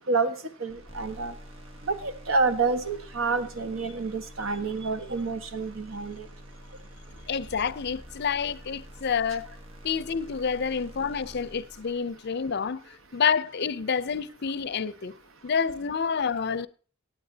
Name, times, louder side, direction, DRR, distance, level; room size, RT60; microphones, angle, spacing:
voice 1, 0.6-1.3 1.9-6.3, right 4 dB, 85° right, 1.3 m, -28 dB
sound 1, 0.7-12.4, equal, 30° right, 1.6 m, -48 dB
sound 2, 7.0-9.8, right 1 dB, 45° right, 2.5 m, -55 dB
voice 2, 7.3-9.5 9.8-15.1 15.4-16.7, left 6 dB, 55° left, 0.6 m, -28 dB
17.5 x 9.3 x 2.8 m
head